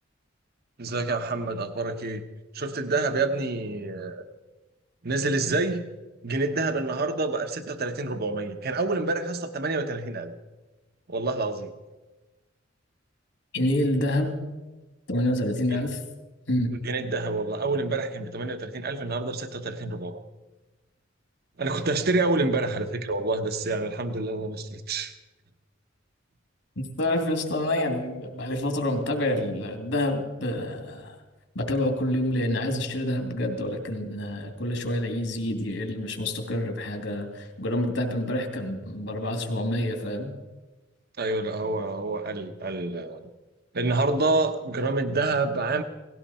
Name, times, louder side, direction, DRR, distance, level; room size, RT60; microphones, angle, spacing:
voice 1, 0.8-2.2 2.5-4.2 5.0-5.8 6.2-10.3 11.1-11.7 15.7-15.9 16.8-20.2 21.6-25.1 41.2-43.3 43.7-45.8, right 3 dB, 55° right, 8 dB, 1.0 m, -27 dB
voice 2, 13.5-14.3 15.1-16.0 16.5-16.7 26.8-31.2 31.5-40.3, left 1 dB, 75° left, 4 dB, 2.7 m, -27 dB
18.0 x 17.0 x 4.3 m, 1.1 s
head